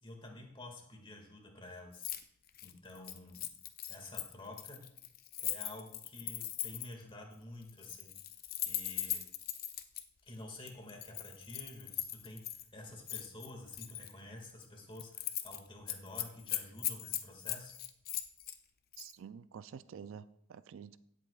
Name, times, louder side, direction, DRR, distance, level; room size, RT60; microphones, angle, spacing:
voice 1, 0.0-2.1 2.6-3.5 3.9-4.8 5.4-8.1 8.6-9.2 10.2-17.7, left 1 dB, 25° left, 2 dB, 1.9 m, -50 dB
Keys jangling, 1.9-2.2 2.5-7.0 7.7-10.0 10.7-12.6 13.1-14.1 14.5-14.6 14.9-15.6 15.9-18.6 18.9-19.1, left 12 dB, 45° left, 0.6 m, -39 dB
voice 2, 19.0-21.0, right 7 dB, 70° right, 14 dB, 0.4 m, -49 dB
16.5 x 8.2 x 2.3 m, 0.69 s
head